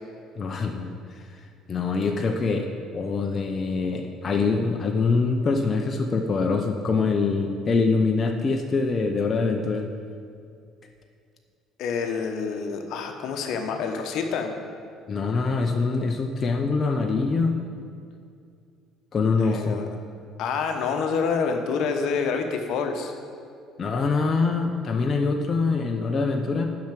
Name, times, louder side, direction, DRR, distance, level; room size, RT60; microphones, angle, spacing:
voice 1, 0.4-1.2 1.7-2.7 2.9-9.9 15.1-17.6 19.1-19.8 23.8-26.6, left 4 dB, 40° left, 3 dB, 0.7 m, -24 dB
voice 2, 11.8-14.5 19.4-19.9 20.4-23.1, left 5 dB, 70° left, 5 dB, 1.0 m, -27 dB
7.3 x 5.8 x 7.5 m, 2.4 s
supercardioid pair, 85°, 0 cm